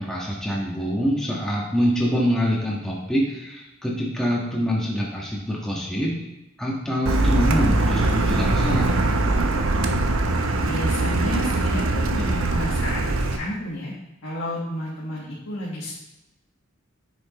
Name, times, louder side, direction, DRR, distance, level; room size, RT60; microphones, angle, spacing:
voice 1, 0.0-6.1 6.6-8.9, equal, 5° left, -5 dB, 1.5 m, -25 dB
Car, 7.1-13.4, right 2 dB, 80° right, 0.8 m, -22 dB
voice 2, 10.6-13.9 14.2-15.9, left 1 dB, 85° left, -6 dB, 1.7 m, -31 dB
9.1 x 6.4 x 3.1 m, 0.93 s
head